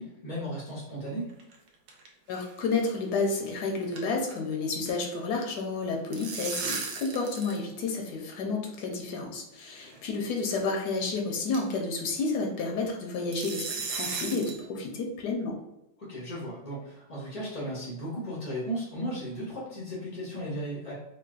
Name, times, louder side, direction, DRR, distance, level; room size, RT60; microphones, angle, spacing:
voice 1, 0.0-1.3 16.1-20.9, equal, 55° left, -5 dB, 0.4 m, -35 dB
sound 1, 1.3-2.1 2.3-2.5 2.8-2.9 3.2-3.5 3.7-5.0 5.8-7.6 7.9-8.0 8.8-8.9 9.8-10.0 10.4-10.5 10.9-11.0 11.5-11.8 13.3-14.6, right 4 dB, 75° right, 1.1 m, -36 dB
voice 2, 2.3-15.6, left 3 dB, 80° left, 2 dB, 1.2 m, -31 dB
3.8 x 2.1 x 2.4 m, 0.87 s
omnidirectional pair, 1.7 m